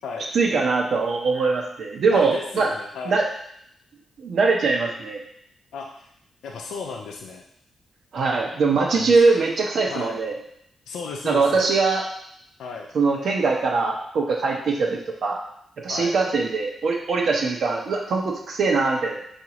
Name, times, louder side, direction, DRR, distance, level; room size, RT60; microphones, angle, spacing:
voice 1, 0.3-2.7 3.1-3.2 4.2-5.2 8.1-10.4 11.2-12.0 12.9-15.4 15.8-19.2, right 4 dB, 75° right, 0 dB, 0.8 m, -22 dB
voice 2, 2.1-3.2 5.7-6.1 6.4-7.4 8.9-9.1 9.9-10.2 10.9-11.7 12.6-12.9 15.9-16.2, left 4 dB, 90° left, 0 dB, 0.4 m, -34 dB
4.8 x 2.6 x 2.9 m, 0.72 s
cardioid pair, 60°, 0 cm